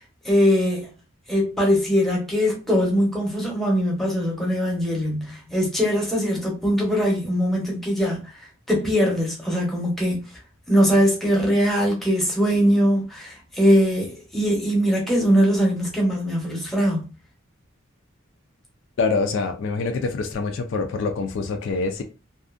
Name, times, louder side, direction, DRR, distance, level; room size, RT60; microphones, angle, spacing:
voice 1, 0.2-0.9 1.3-8.3 8.7-10.2 10.7-17.1, equal, ahead, 0.8 m, -21 dB
voice 2, 19.0-22.0, left 4 dB, 60° left, 0.3 m, -25 dB
2.6 x 2.4 x 2.4 m
head